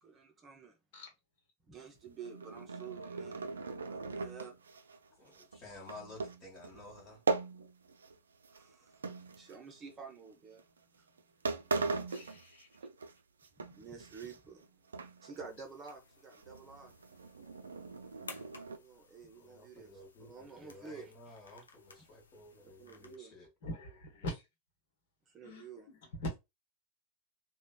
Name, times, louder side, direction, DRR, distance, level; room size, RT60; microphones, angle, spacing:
voice 1, 0.0-0.8 1.7-3.4 3.8-4.6 8.5-9.1 9.4-10.6 11.0-11.1 13.6-14.7 15.2-16.9 18.8-19.9 20.2-21.1 22.8-23.4 25.3-25.9, right 5 dB, 25° right, 0.7 m, -50 dB
sound 1, 2.0-8.2 8.4-9.9 10.6-10.8 11.2-11.3 11.5-13.1 13.4-14.7 14.9-15.5 15.8-15.9 16.3-18.8, right 4 dB, 70° right, 0.3 m, -39 dB
voice 2, 5.2-7.2 19.3-23.5, left 2 dB, 30° left, 1.2 m, -53 dB
voice 3, 12.1-12.7 23.6-24.4 25.4-26.4, equal, 55° left, 1.0 m, -42 dB
sound 2, 15.4-23.2, left 4 dB, 70° left, 0.5 m, -57 dB
3.1 x 2.1 x 2.2 m
figure-of-eight pair, 90°, 0 cm